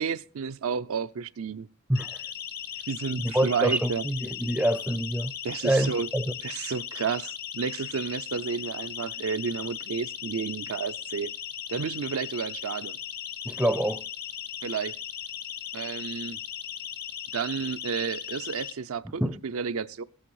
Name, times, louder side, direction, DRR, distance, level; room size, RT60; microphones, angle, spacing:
voice 1, 0.0-1.7 2.9-4.0 5.4-6.1 6.4-11.3 11.7-13.0 14.6-14.9 15.7-16.4 17.3-20.0, right 6 dB, 65° right, 0.5 m, -31 dB
Siren, 1.9-18.7, left 9 dB, 45° left, 0.8 m, -38 dB
voice 2, 3.2-5.3 5.6-6.2 13.4-14.0 19.2-19.4, right 1 dB, 5° right, 0.5 m, -26 dB
15.5 x 8.8 x 4.7 m
head